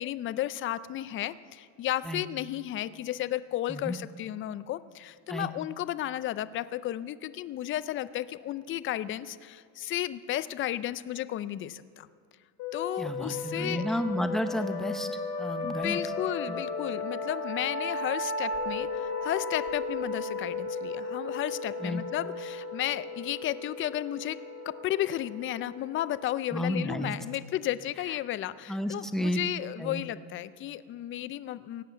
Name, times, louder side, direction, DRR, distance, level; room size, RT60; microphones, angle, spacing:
voice 1, 0.0-12.1 12.7-13.9 15.6-24.4 24.7-31.8, left 13 dB, 30° left, 16 dB, 0.4 m, -33 dB
sound 1, 12.6-27.9, left 2 dB, 65° left, 2.7 m, -35 dB
voice 2, 13.0-15.1 15.4-16.0 16.5-16.6 21.8-22.0 26.5-27.1 28.7-29.4 29.8-30.0, equal, ahead, 7 dB, 0.8 m, -31 dB
18.0 x 7.6 x 8.2 m, 2.2 s
cardioid pair, 130°, 40 cm